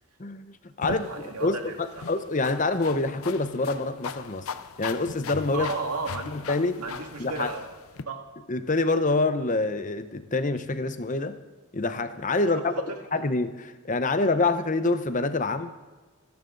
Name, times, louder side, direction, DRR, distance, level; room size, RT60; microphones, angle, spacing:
voice 1, 0.2-0.5 0.8-1.1 1.4-4.5 4.8-5.7 6.3-6.8 7.2-7.5 8.5-11.4 11.7-12.7 13.1-15.7, left 3 dB, 35° left, 10 dB, 0.8 m, -26 dB
sound 1, 0.8-8.0, left 5 dB, 70° left, 0.7 m, -39 dB
voice 2, 0.9-2.1 5.5-6.3 6.8-7.6 8.1-8.2 12.6-13.0, right 4 dB, 90° right, 3 dB, 2.2 m, -34 dB
26.5 x 10.5 x 3.9 m, 1.3 s
head